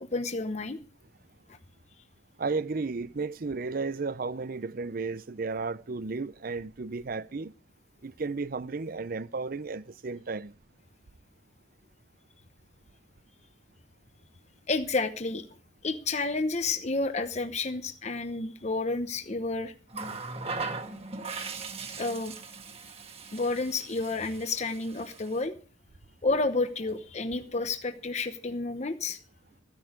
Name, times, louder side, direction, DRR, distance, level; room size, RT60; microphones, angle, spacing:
voice 1, 0.0-0.8 14.7-15.5 15.8-19.7 22.0-22.3 23.3-25.6 26.2-29.2, left 3 dB, 35° left, 0.9 m, -30 dB
voice 2, 2.4-7.5 8.0-10.5, right 4 dB, 50° right, 0.6 m, -33 dB
Water tap faucet, 19.9-25.5 26.7-26.9, right 4 dB, 30° right, 1.5 m, -39 dB
15.0 x 10.5 x 5.0 m
head